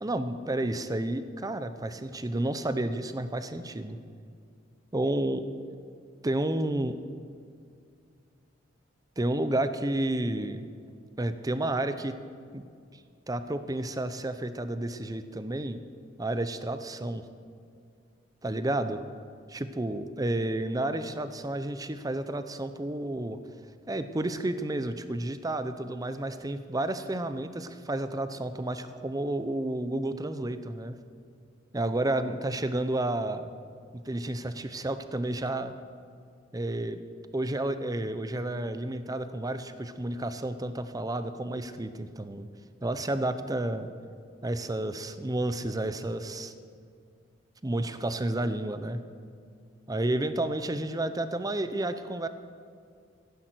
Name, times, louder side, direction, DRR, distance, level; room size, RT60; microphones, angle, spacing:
voice 1, 0.0-4.0 4.9-5.4 6.2-7.0 9.2-10.7 11.2-12.2 12.5-12.6 13.3-15.8 16.2-17.2 18.4-19.0 19.5-23.4 23.9-31.0 31.7-33.5 33.9-35.7 36.5-37.0 37.3-42.5 42.8-43.9 44.4-46.5 47.6-49.0 49.9-52.3, right 1 dB, 20° right, 11 dB, 0.7 m, -31 dB
15.0 x 10.5 x 6.3 m, 2.3 s
head